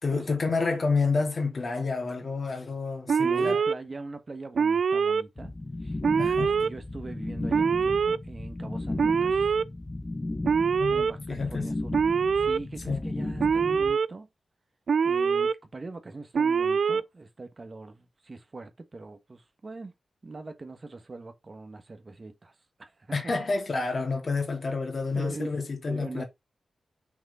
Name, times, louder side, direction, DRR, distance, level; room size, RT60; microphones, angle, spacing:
voice 1, 0.0-3.6 6.2-6.6 10.8-10.9 11.3-11.7 12.9-13.0 23.1-26.2, left 4 dB, 55° left, 2.4 m, -29 dB
voice 2, 3.1-5.5 5.8-6.0 6.3-9.5 10.9-11.9 12.4-14.3 15.0-19.9 20.2-23.3 25.1-25.5 25.9-26.2, right 3 dB, 40° right, 1.3 m, -41 dB
Alarm, 3.1-3.7 4.6-5.2 6.0-6.7 7.5-8.2 9.0-9.6 10.4-11.1 11.9-12.6 13.4-14.1 14.9-15.5 16.3-17.0, right 6 dB, 70° right, 0.3 m, -24 dB
sound 1, 5.4-13.9, left 2 dB, 25° left, 1.0 m, -35 dB
6.0 x 3.7 x 4.2 m
cardioid pair, 70°, 0 cm